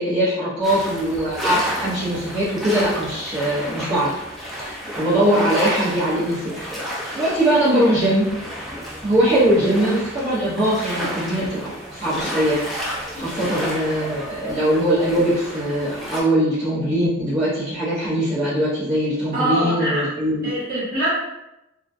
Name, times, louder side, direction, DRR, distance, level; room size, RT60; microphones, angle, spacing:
voice 1, 0.0-4.1 4.5-6.7 7.1-8.3 9.0-11.6 11.9-12.6 13.2-20.5, right 1 dB, 30° right, -13 dB, 0.8 m, -21 dB
sound 1, 0.6-16.2, equal, ahead, 0.4 m, -31 dB
voice 2, 19.3-20.0 20.4-21.1, right 1 dB, 50° right, -9 dB, 1.2 m, -24 dB
2.4 x 2.2 x 2.5 m, 0.91 s
head